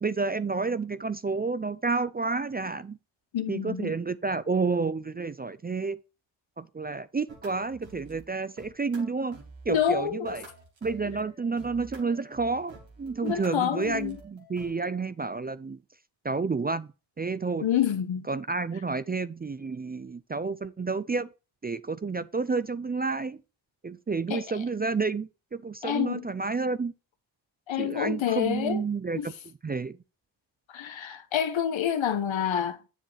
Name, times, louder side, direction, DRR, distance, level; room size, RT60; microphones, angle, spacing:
voice 1, 0.0-3.0 3.5-6.0 6.6-9.4 9.7-10.4 10.8-15.8 16.2-16.9 17.2-17.6 18.3-21.3 21.6-23.4 23.8-26.9 27.8-29.3 29.6-30.0, right 4 dB, 25° right, 0.3 m, -30 dB
voice 2, 3.3-4.0 9.7-10.4 13.2-14.2 17.6-18.3 24.3-24.6 25.8-26.3 27.7-28.8 29.1-29.4 30.7-32.9, left 9 dB, 80° left, 1.0 m, -28 dB
sound 1, 7.3-8.2 8.6-14.7, right 3 dB, 80° right, 2.6 m, -49 dB
7.8 x 6.4 x 3.3 m
cardioid pair, 65°, 45 cm